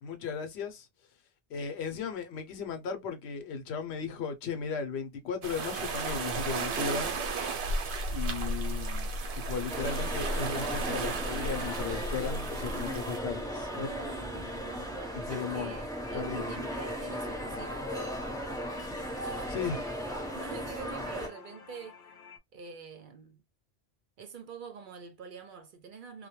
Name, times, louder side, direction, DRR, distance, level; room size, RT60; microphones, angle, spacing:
voice 1, 0.0-0.9 1.5-7.2 8.1-13.9 15.1-15.8 16.1-16.4 19.5-19.8, left 6 dB, 85° left, 0.9 m, -36 dB
sound 1, 5.4-13.2, right 3 dB, 85° right, 0.9 m, -34 dB
sound 2, 9.7-21.3, equal, 5° left, 0.7 m, -37 dB
voice 2, 13.7-17.9 19.0-19.9 20.3-22.0 22.5-23.4 24.2-26.3, right 6 dB, 60° right, 0.6 m, -46 dB
sound 3, 15.5-22.4, left 6 dB, 55° left, 0.5 m, -49 dB
2.2 x 2.2 x 2.9 m
omnidirectional pair, 1.1 m